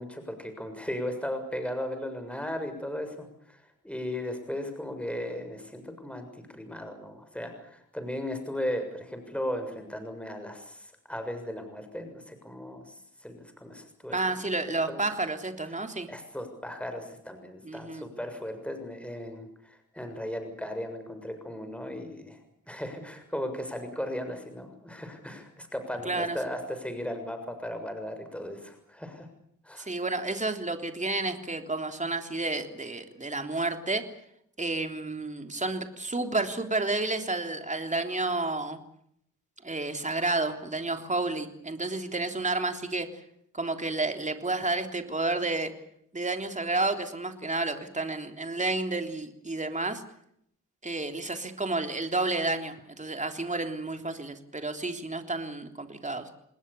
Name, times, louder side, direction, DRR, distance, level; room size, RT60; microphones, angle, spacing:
voice 1, 0.0-6.3 6.5-12.9 13.2-14.2 14.9-15.0 16.1-22.4 22.7-29.3 29.6-29.9, left 1 dB, 5° left, 7 dB, 6.9 m, -36 dB
voice 2, 14.1-16.1 17.6-18.1 26.0-26.4 29.8-34.0 34.6-38.8 39.6-43.1 43.5-45.7 46.1-50.0 50.8-56.3, right 2 dB, 25° right, 6 dB, 3.4 m, -30 dB
28.5 x 20.5 x 7.0 m, 0.71 s
cardioid pair, 90°, 32 cm